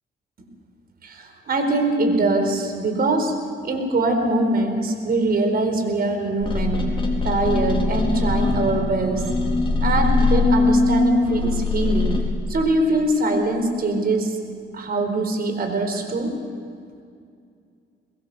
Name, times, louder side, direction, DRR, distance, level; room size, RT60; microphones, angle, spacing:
voice 1, 1.0-3.3 3.6-7.0 7.2-9.3 9.8-14.4 14.7-16.4, right 2 dB, 50° right, 5 dB, 4.4 m, -22 dB
sound 1, 6.4-12.2, left 3 dB, 25° left, 4.2 m, -21 dB
23.5 x 20.5 x 6.8 m, 2.3 s
cardioid pair, 90°, 20 cm